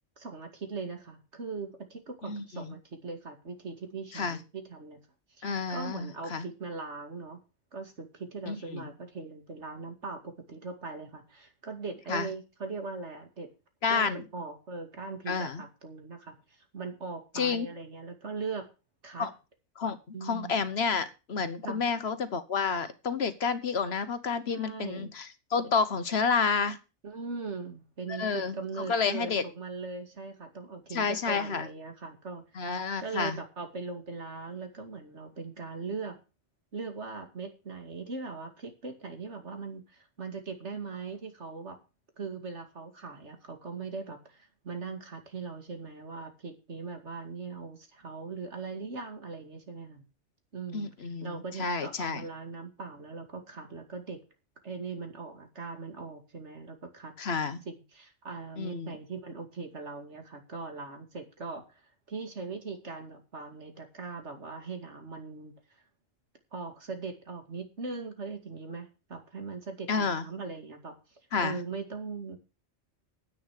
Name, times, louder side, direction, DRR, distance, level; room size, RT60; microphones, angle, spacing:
voice 1, 0.2-5.0 5.3-7.4 7.7-13.5 13.9-18.7 19.0-19.3 20.1-20.5 21.6-21.8 24.5-25.1 27.0-32.4 33.0-36.2 36.7-41.8 42.2-50.0 50.5-50.9 51.2-54.2 54.6-57.1 57.6-65.5 66.5-72.4, right 4 dB, 75° right, 5 dB, 2.7 m, -40 dB
voice 2, 2.2-2.7 4.1-4.4 5.4-6.5 8.5-8.8 12.1-12.3 13.8-14.2 15.3-15.6 17.3-17.7 19.2-19.3 19.8-26.8 28.1-28.5 28.9-29.4 30.9-31.7 32.6-33.4 50.7-52.2 57.2-57.6 58.6-59.0 69.9-70.2 71.3-71.6, left 5 dB, 65° left, 12 dB, 1.3 m, -30 dB
10.0 x 8.7 x 6.4 m, 0.31 s
omnidirectional pair, 1.2 m